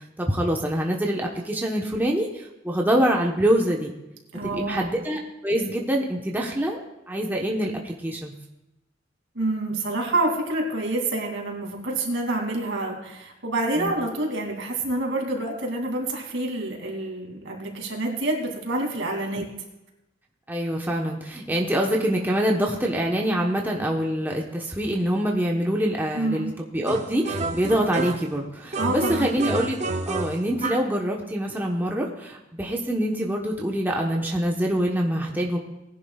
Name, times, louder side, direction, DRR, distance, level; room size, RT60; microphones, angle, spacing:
voice 1, 0.2-3.9 4.5-8.3 13.8-13.9 20.5-29.8 30.1-35.6, equal, 10° right, -1 dB, 1.0 m, -25 dB
voice 2, 4.3-4.9 9.3-19.5 26.1-26.5 28.8-29.3, right 2 dB, 75° right, 1 dB, 2.6 m, -27 dB
sound 1, 26.9-28.4 28.7-30.9, right 3 dB, 40° right, 0.6 m, -30 dB
19.0 x 11.0 x 2.4 m, 0.93 s
head